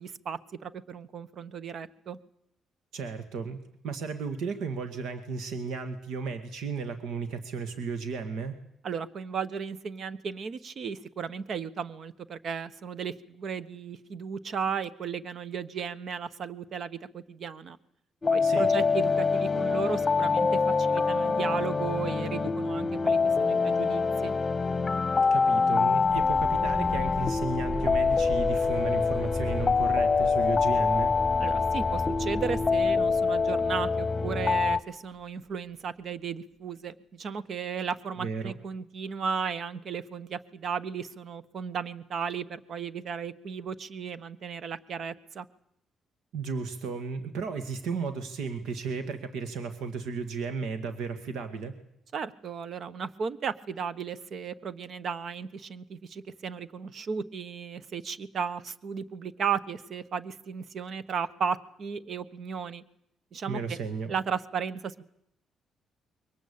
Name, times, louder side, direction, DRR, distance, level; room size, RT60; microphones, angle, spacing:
voice 1, 0.0-2.2 8.8-17.8 18.3-24.3 31.4-45.5 52.1-62.8 63.3-63.8 64.1-65.1, right 6 dB, 55° right, 15 dB, 1.2 m, -35 dB
voice 2, 2.9-3.6 3.8-8.6 18.4-18.7 25.2-31.1 38.2-38.5 46.3-51.7 63.5-64.1, right 5 dB, 80° right, 9 dB, 2.0 m, -34 dB
sound 1, 18.2-34.8, left 4 dB, 25° left, 1.0 m, -25 dB
sound 2, 26.0-34.9, equal, 5° right, 5.1 m, -39 dB
23.5 x 19.0 x 8.7 m, 0.77 s
cardioid pair, 90°, 0 cm